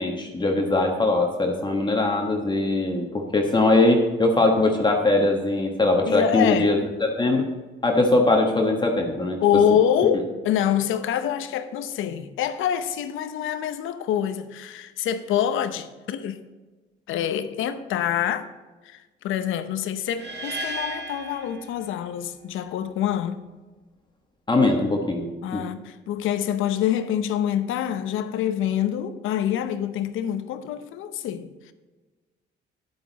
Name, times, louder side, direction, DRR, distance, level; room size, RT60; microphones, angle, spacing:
voice 1, 0.0-7.5 7.8-9.4 24.5-25.7, left 2 dB, 20° left, 1.4 m, -21 dB
voice 2, 6.1-6.7 9.4-16.4 17.1-18.5 18.8-23.4 25.4-31.7, left 9 dB, 85° left, 0.8 m, -26 dB
sound 1, 20.1-22.3, right 1 dB, 60° right, 1.5 m, -34 dB
10.0 x 8.6 x 4.1 m
cardioid pair, 90°, 20 cm